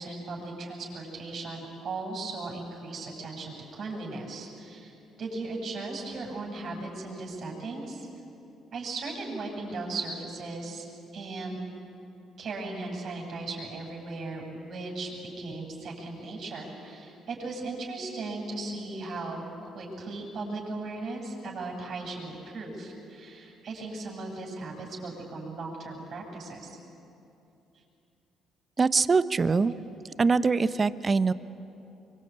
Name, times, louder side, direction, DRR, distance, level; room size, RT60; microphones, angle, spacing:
voice 1, 0.0-8.1 8.7-10.9 11.1-11.6 12.4-19.4 19.7-26.8 29.2-29.6, right 3 dB, 60° right, 0 dB, 7.7 m, -37 dB
voice 2, 28.8-29.7 30.2-31.3, right 4 dB, 35° right, 14 dB, 0.9 m, -23 dB
25.0 x 24.5 x 8.9 m, 2.8 s
supercardioid pair, 60°, 0 cm